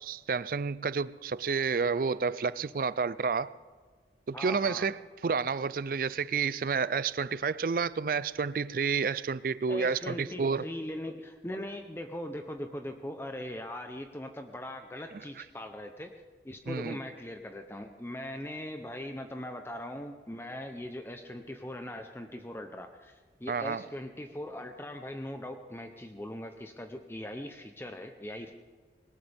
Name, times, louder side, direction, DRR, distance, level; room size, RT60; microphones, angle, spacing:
voice 1, 0.0-3.5 4.3-10.7 16.7-17.0 23.5-23.8, right 5 dB, 50° right, 0.4 m, -30 dB
voice 2, 4.3-4.9 9.7-16.1 16.4-28.5, left 1 dB, 15° left, 0.7 m, -40 dB
20.5 x 19.0 x 3.5 m
head